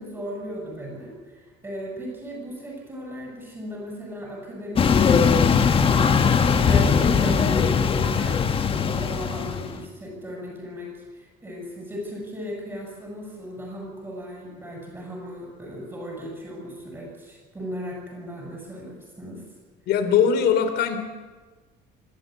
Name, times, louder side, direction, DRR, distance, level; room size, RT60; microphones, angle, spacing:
voice 1, 0.0-5.4 5.8-19.4, equal, 15° right, -2 dB, 7.6 m, -36 dB
sound 1, 4.8-9.8, left 6 dB, 30° left, 1.5 m, -20 dB
voice 2, 19.9-21.0, left 7 dB, 65° left, 8 dB, 3.4 m, -20 dB
26.5 x 13.5 x 9.5 m, 1.4 s
cardioid pair, 155°, 18 cm